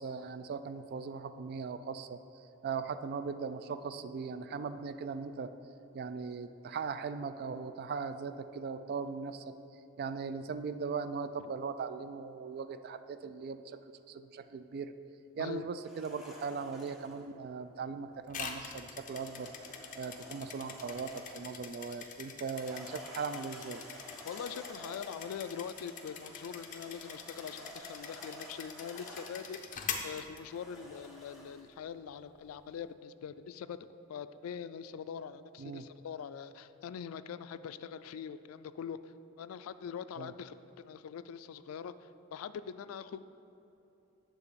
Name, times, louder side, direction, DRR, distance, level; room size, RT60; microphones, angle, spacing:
voice 1, 0.0-2.2 2.6-5.5 5.9-9.6 10.0-13.8 14.1-14.9 15.4-19.5 20.0-23.8 35.6-35.9 40.2-40.3, right 5 dB, 50° right, 11 dB, 0.3 m, -39 dB
sound 1, 15.8-17.3 19.0-21.6 22.4-29.6 30.5-31.7, equal, ahead, 1.0 m, -51 dB
sound 2, 18.3-31.0, left 6 dB, 40° left, 0.7 m, -45 dB
voice 2, 24.3-43.3, left 7 dB, 85° left, 13 dB, 0.3 m, -43 dB
9.7 x 3.8 x 6.8 m, 2.9 s
head